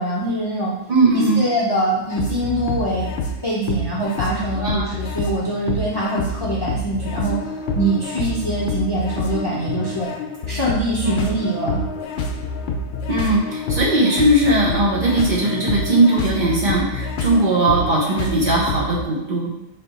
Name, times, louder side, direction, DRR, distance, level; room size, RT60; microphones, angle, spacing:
voice 1, 0.0-0.7 1.1-3.1 3.4-7.4 7.7-10.1 10.5-11.8, right 1 dB, 25° left, -6 dB, 0.6 m, -23 dB
voice 2, 0.9-1.4 4.5-4.9 11.0-11.1 13.1-19.7, right 2 dB, 45° right, -4 dB, 0.9 m, -19 dB
sound 1, 2.1-19.0, left 2 dB, 65° left, 0.8 m, -27 dB
3.5 x 2.8 x 4.1 m, 0.90 s
omnidirectional pair, 1.2 m